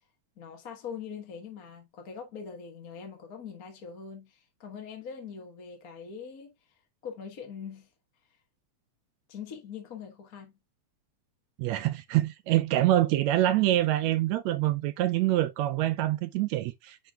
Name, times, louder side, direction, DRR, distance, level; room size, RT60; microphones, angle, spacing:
voice 1, 0.4-7.9 9.3-10.5, left 6 dB, 45° left, 1.3 m, -42 dB
voice 2, 11.6-17.0, right 14 dB, 80° right, 1.7 m, -25 dB
10.0 x 4.6 x 2.4 m
omnidirectional pair, 3.4 m